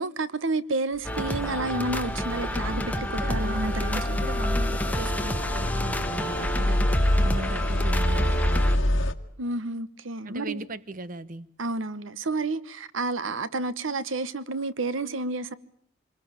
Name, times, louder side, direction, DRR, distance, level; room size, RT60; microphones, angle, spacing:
voice 1, 0.0-2.8 3.1-4.2 9.4-10.6 11.6-15.5, right 2 dB, 80° right, 1.1 m, -30 dB
sound 1, 1.0-8.8, equal, 10° left, 1.3 m, -30 dB
sound 2, 1.1-9.1, left 1 dB, 70° left, 1.8 m, -27 dB
voice 2, 2.7-6.8 7.2-9.1 10.2-11.5, right 2 dB, 45° right, 1.0 m, -38 dB
26.5 x 21.0 x 8.9 m
head